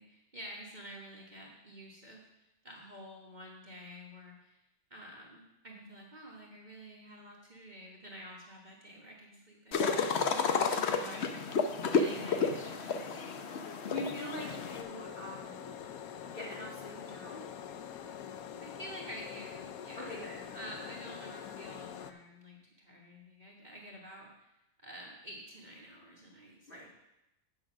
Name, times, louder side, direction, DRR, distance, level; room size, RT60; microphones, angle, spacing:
voice 1, 0.0-2.2 2.6-4.6 4.9-10.0 10.5-11.4 11.9-13.4 18.6-20.2 20.5-24.5 24.8-26.9, equal, 30° right, -2 dB, 1.4 m, -49 dB
sound 1, 9.7-14.8, left 5 dB, 55° left, 0.9 m, -31 dB
voice 2, 13.8-15.7 16.2-17.5 20.0-20.5 26.7-26.9, left 1 dB, 35° left, -3 dB, 2.1 m, -43 dB
sound 2, 14.3-22.1, left 8 dB, 75° left, 1.1 m, -45 dB
8.6 x 6.3 x 6.1 m, 0.89 s
omnidirectional pair, 1.5 m